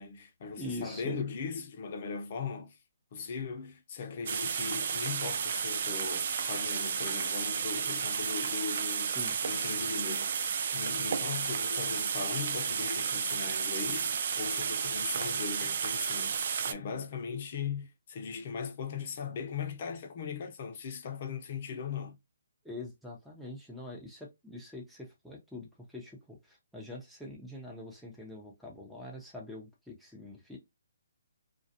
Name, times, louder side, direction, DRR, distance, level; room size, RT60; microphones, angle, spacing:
voice 1, 0.0-2.8 3.1-9.2 9.4-22.2, left 6 dB, 45° left, 0.6 m, -39 dB
voice 2, 0.6-1.2 9.1-9.4 22.6-30.6, left 1 dB, ahead, 0.7 m, -44 dB
sound 1, 4.3-16.7, right 6 dB, 55° right, 0.3 m, -32 dB
2.4 x 2.3 x 2.6 m
figure-of-eight pair, 140°, 0 cm